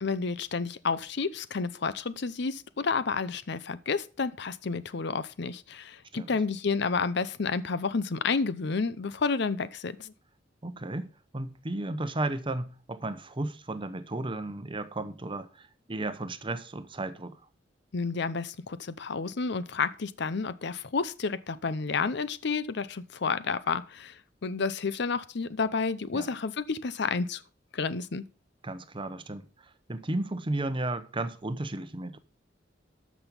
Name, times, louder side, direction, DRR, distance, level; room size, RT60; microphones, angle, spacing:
voice 1, 0.0-10.1 17.9-27.4 27.7-28.2, left 4 dB, 65° left, 0.7 m, -30 dB
voice 2, 10.6-17.4 26.1-26.3 28.6-32.2, right 2 dB, 25° right, 0.8 m, -34 dB
13.0 x 6.2 x 5.3 m
head